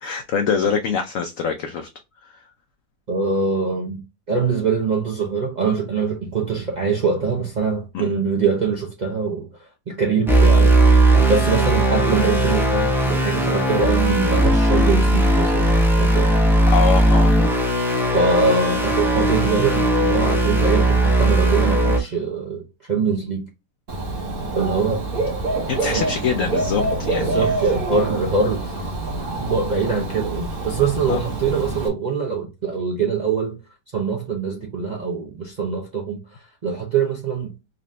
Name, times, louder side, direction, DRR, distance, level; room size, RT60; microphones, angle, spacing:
voice 1, 0.0-1.9 2.2-2.3 7.9-8.1 11.4-11.5 16.7-17.3 25.7-27.6 31.1-31.2, left 6 dB, 70° left, 0.8 m, -24 dB
voice 2, 3.1-4.0 4.3-10.9 11.3-15.7 16.0-16.3 18.1-22.6 22.9-23.5 24.5-25.1 25.8-26.0 27.2-28.7 29.4-33.6 33.9-37.5, right 5 dB, 75° right, 0.4 m, -23 dB
sound 1, 10.3-22.0, right 1 dB, 5° right, 0.3 m, -17 dB
Dog / Bird, 23.9-31.9, right 2 dB, 40° right, 1.1 m, -26 dB
3.9 x 2.5 x 3.1 m
omnidirectional pair, 1.8 m